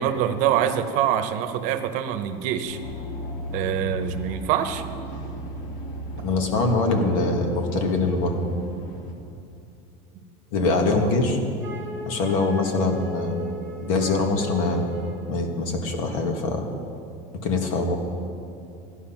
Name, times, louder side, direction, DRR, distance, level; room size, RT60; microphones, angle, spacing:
voice 1, 0.0-2.8 3.5-4.8 10.5-11.1, right 10 dB, 45° right, 9 dB, 0.9 m, -25 dB
sound 1, 2.7-9.1, left 1 dB, 45° left, 1.6 m, -36 dB
voice 2, 6.2-8.4 10.5-11.4 12.1-13.4 13.8-14.9 15.3-16.6 17.4-18.0, left 3 dB, 80° left, 3 dB, 2.1 m, -23 dB
Wind instrument woodwind instrument, 11.6-15.3, equal, 10° left, 2.6 m, -38 dB
14.5 x 11.0 x 5.9 m, 2.6 s
cardioid pair, 170°, 17 cm